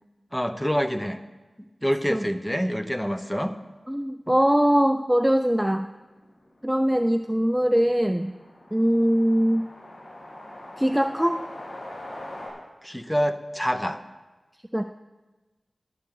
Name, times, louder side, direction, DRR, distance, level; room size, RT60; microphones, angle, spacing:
voice 1, 0.3-1.2 1.8-3.5 12.8-14.0, equal, 5° left, 8 dB, 0.8 m, -26 dB
voice 2, 3.9-5.9 6.6-8.3 8.7-9.7 10.8-11.4 14.7-14.8, equal, 10° right, 8 dB, 0.4 m, -22 dB
sound 1, 5.0-5.1 5.3-5.4 5.7-12.5, left 1 dB, 75° left, 5.5 m, -43 dB
21.5 x 8.5 x 3.8 m, 1.2 s
wide cardioid pair, 75°, 0 cm